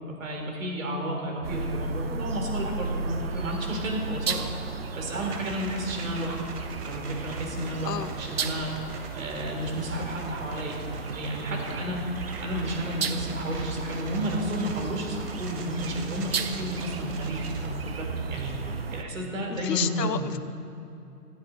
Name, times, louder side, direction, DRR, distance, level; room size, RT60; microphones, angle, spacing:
voice 1, 0.0-4.5 4.9-6.4 6.8-10.7 11.0-12.0 12.4-20.3, equal, 55° right, 0 dB, 4.5 m, -32 dB
sound 1, 1.4-19.0, right 4 dB, 40° right, 0.8 m, -34 dB
sound 2, 5.3-17.7, right 4 dB, 75° right, 2.5 m, -46 dB
voice 2, 7.8-8.4 19.5-20.4, left 8 dB, 80° left, 12 dB, 0.9 m, -31 dB
21.5 x 13.5 x 4.6 m, 2.7 s
hypercardioid pair, 165°, 48 cm